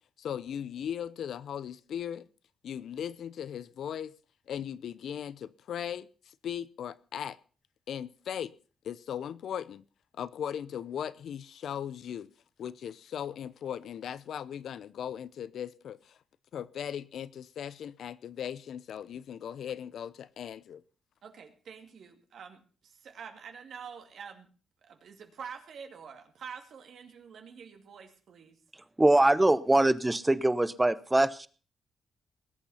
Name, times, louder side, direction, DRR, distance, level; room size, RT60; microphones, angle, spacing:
voice 1, 0.2-2.3 2.6-4.1 4.5-7.4 7.9-8.5 8.8-9.8 10.2-12.3 12.6-16.2 16.5-20.8, left 9 dB, 75° left, 0.7 m, -38 dB
voice 2, 21.2-24.5 24.8-28.6, right 6 dB, 70° right, 2.3 m, -47 dB
voice 3, 29.0-31.5, right 1 dB, 15° right, 0.9 m, -23 dB
20.0 x 8.8 x 5.6 m
cardioid pair, 95°, 0 cm